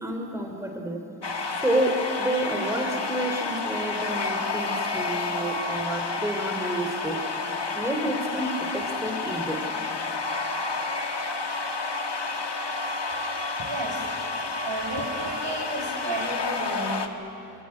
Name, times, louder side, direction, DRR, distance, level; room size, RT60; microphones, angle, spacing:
voice 1, 0.0-1.0 1.6-7.2 7.7-9.6, right 1 dB, 5° right, 3 dB, 3.2 m, -29 dB
sound 1, 1.2-17.1, left 3 dB, 75° left, 1.7 m, -30 dB
voice 2, 13.6-14.1 14.6-17.1, right 2 dB, 75° right, 0 dB, 6.3 m, -33 dB
25.5 x 24.0 x 9.8 m, 2.9 s
wide cardioid pair, 65°, 42 cm